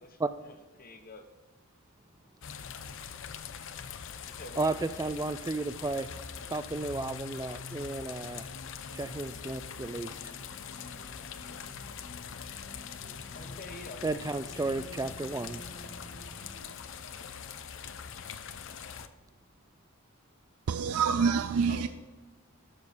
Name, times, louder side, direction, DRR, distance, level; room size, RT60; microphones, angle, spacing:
voice 1, 0.0-1.3 4.3-4.8 13.3-14.5 21.7-21.9, left 3 dB, 40° left, 1.0 m, -47 dB
sound 1, 2.4-19.1, left 7 dB, 60° left, 0.6 m, -43 dB
voice 2, 4.6-6.1 6.5-8.5 8.9-10.1 14.0-15.6, right 3 dB, 15° right, 0.3 m, -33 dB
sound 2, 7.8-16.7, equal, 85° left, 2.7 m, -52 dB
voice 3, 20.7-21.9, right 6 dB, 90° right, 0.4 m, -26 dB
12.0 x 6.7 x 4.2 m
head